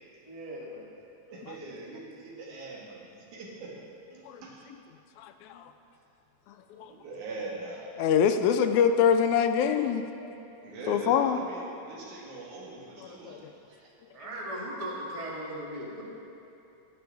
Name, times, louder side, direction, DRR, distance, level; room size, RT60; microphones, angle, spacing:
voice 1, 0.3-0.9 14.1-16.0, right 1 dB, 35° right, -4 dB, 0.5 m, -38 dB
voice 2, 1.3-3.7 4.1-4.7 6.8-8.0 10.6-13.4 13.7-13.9, right 2 dB, 75° right, -4 dB, 3.0 m, -42 dB
voice 3, 5.2-5.6 6.5-6.9 8.0-10.0 10.9-11.4 13.3-13.5, left 7 dB, 85° left, 8 dB, 2.0 m, -25 dB
18.5 x 6.3 x 3.4 m, 2.9 s
omnidirectional pair, 3.5 m